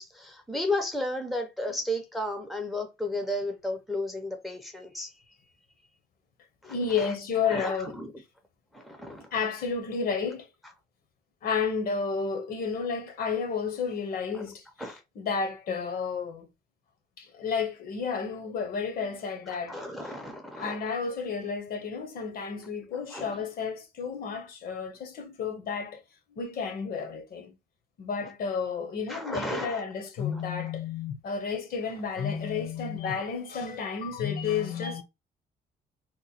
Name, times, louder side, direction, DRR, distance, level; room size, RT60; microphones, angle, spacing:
voice 1, 0.0-5.1 6.6-7.1 7.5-8.1 8.7-9.3 14.3-14.4 14.8-15.0 19.5-20.9 23.1-23.4 28.2-28.3 29.1-29.8 30.3-30.4, left 1 dB, ahead, 0.6 m, -34 dB
voice 2, 6.6-8.0 9.3-10.5 11.4-14.6 15.2-16.5 17.2-19.8 20.5-26.0 26.3-27.5 28.0-35.0, left 5 dB, 55° left, 0.8 m, -31 dB
2.9 x 2.1 x 4.0 m
cardioid pair, 155°, 18 cm